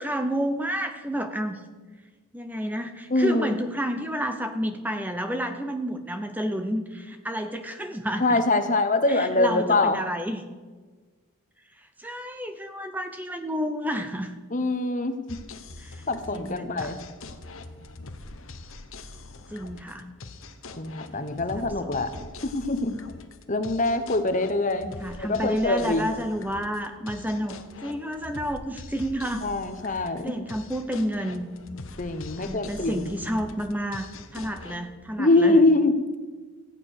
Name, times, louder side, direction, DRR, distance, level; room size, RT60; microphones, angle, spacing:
voice 1, 0.0-1.6 2.3-8.4 9.1-10.4 11.8-14.3 15.8-16.1 16.3-16.9 19.5-20.0 21.6-21.9 22.2-22.3 24.8-29.4 29.9-31.5 32.4-35.6, equal, 5° right, 7 dB, 0.7 m, -30 dB
voice 2, 3.1-3.5 8.2-10.0 14.5-15.4 16.1-17.0 20.8-22.1 22.4-23.0 23.5-26.1 29.4-30.5 32.0-33.1 35.2-35.9, left 2 dB, 35° left, 10 dB, 0.9 m, -24 dB
sound 1, 15.3-34.8, left 3 dB, 65° left, 1.1 m, -43 dB
14.5 x 9.6 x 6.5 m, 1.4 s
head